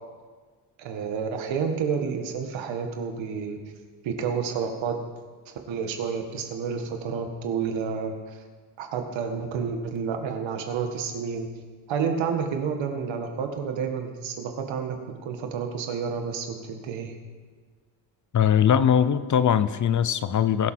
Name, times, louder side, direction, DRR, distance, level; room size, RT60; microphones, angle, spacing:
voice 1, 0.8-3.6 4.0-5.0 5.5-8.4 8.8-11.5 11.9-15.0 15.2-17.2, right 6 dB, 85° right, 4 dB, 1.8 m, -30 dB
voice 2, 18.3-20.7, left 8 dB, 45° left, 15 dB, 0.6 m, -21 dB
22.0 x 7.5 x 4.4 m, 1.5 s
cardioid pair, 100°, 44 cm